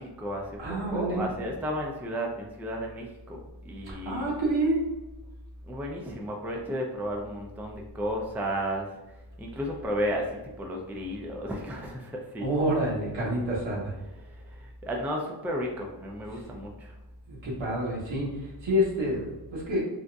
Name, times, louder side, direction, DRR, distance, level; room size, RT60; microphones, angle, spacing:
voice 1, 0.0-3.4 3.7-4.3 5.7-8.9 9.4-12.5 14.2-16.9, equal, 5° right, 1 dB, 0.3 m, -33 dB
voice 2, 0.6-1.3 3.9-4.8 12.4-13.9 17.3-19.8, right 1 dB, 80° right, -4 dB, 1.2 m, -28 dB
3.9 x 2.4 x 2.3 m, 1.1 s
wide cardioid pair, 120°, 45 cm